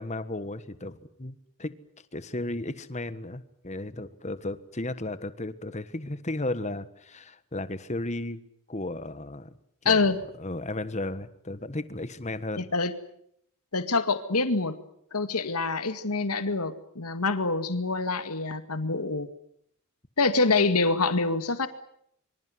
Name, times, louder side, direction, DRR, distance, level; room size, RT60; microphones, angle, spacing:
voice 1, 0.0-1.7 2.1-8.4 8.7-9.5 9.8-10.1 10.4-12.6, left 2 dB, 30° left, 13 dB, 1.5 m, -34 dB
voice 2, 9.9-10.2 12.6-12.9 13.7-14.8 15.1-19.3 20.2-21.7, left 3 dB, 90° left, 10 dB, 2.2 m, -26 dB
25.5 x 25.0 x 7.9 m, 0.70 s
head